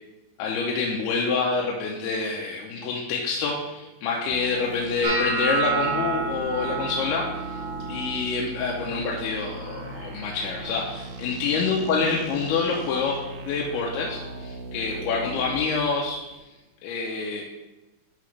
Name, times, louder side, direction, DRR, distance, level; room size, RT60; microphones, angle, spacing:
voice 1, 0.4-7.6 7.9-13.2 13.5-16.2 16.8-17.4, left 4 dB, 85° left, -2 dB, 2.7 m, -27 dB
sound 1, 4.3-15.6, right 2 dB, 85° right, 2.6 m, -38 dB
sound 2, 5.0-11.1 11.4-11.9 12.3-12.8 13.4-13.6 15.4-15.5, right 4 dB, 55° right, 1.9 m, -32 dB
12.0 x 4.2 x 3.2 m, 1.1 s
omnidirectional pair, 4.6 m